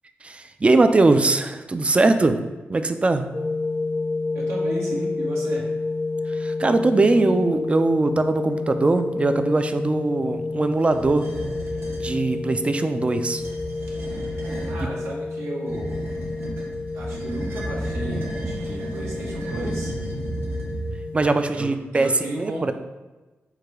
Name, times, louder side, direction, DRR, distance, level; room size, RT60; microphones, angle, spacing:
voice 1, 0.2-2.4 2.7-3.2 6.4-11.2 12.0-13.4 21.1-22.1 22.4-22.7, right 3 dB, 25° right, 9 dB, 0.3 m, -21 dB
sound 1, 3.3-21.4, left 3 dB, 45° left, 0.7 m, -30 dB
voice 2, 4.3-5.7 14.6-16.0 16.9-19.9 21.5-22.7, right 1 dB, 85° right, -3 dB, 1.2 m, -33 dB
sound 2, 10.8-12.1 13.3-14.9 15.7-21.2, right 1 dB, 65° right, 1.1 m, -32 dB
4.7 x 2.2 x 4.8 m, 1.2 s
cardioid pair, 80°, 4 cm